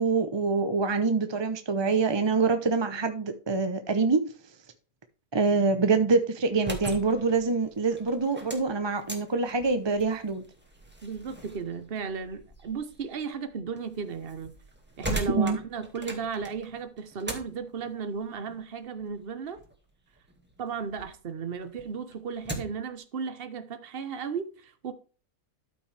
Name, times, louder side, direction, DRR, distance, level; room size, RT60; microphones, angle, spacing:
voice 1, 0.0-4.2 5.3-10.4 15.3-15.6, right 4 dB, 25° right, 0.6 m, -25 dB
sound 1, 6.4-21.1 21.5-22.9, right 1 dB, 5° right, 1.9 m, -41 dB
voice 2, 11.0-14.5 15.0-19.6 20.6-24.9, right 6 dB, 45° right, 1.1 m, -35 dB
13.0 x 5.9 x 3.3 m
omnidirectional pair, 1.6 m